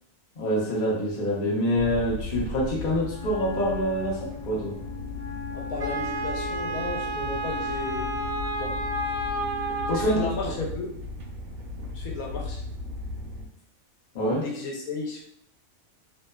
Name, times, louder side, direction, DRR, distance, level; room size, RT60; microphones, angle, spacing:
voice 1, 0.4-4.8 9.9-10.2 14.1-14.4, equal, 45° left, -3 dB, 0.7 m, -26 dB
sound 1, 1.7-13.5, left 2 dB, 80° right, 1.0 m, -37 dB
Wind instrument woodwind instrument, 3.0-10.3, left 8 dB, 20° right, 0.5 m, -39 dB
voice 2, 5.5-8.0 8.6-8.7 9.9-10.9 11.9-12.6 14.4-15.2, left 3 dB, 80° left, -1 dB, 1.1 m, -33 dB
Wind instrument woodwind instrument 2, 5.8-10.3, right 2 dB, 50° right, 0.7 m, -31 dB
2.8 x 2.1 x 2.2 m, 0.69 s
omnidirectional pair, 1.5 m